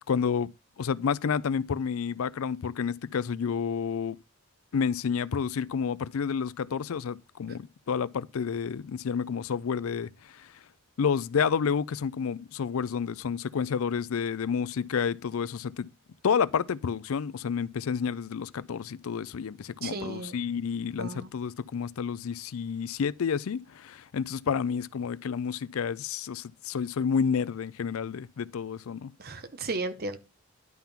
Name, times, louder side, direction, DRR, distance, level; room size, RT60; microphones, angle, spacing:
voice 1, 0.1-0.5 0.8-4.2 4.7-10.5 11.0-15.9 16.2-29.1, left 6 dB, 75° left, 0.4 m, -30 dB
voice 2, 19.8-20.3 21.0-21.3 29.2-30.2, right 3 dB, 45° right, 0.8 m, -34 dB
11.0 x 3.7 x 5.8 m
head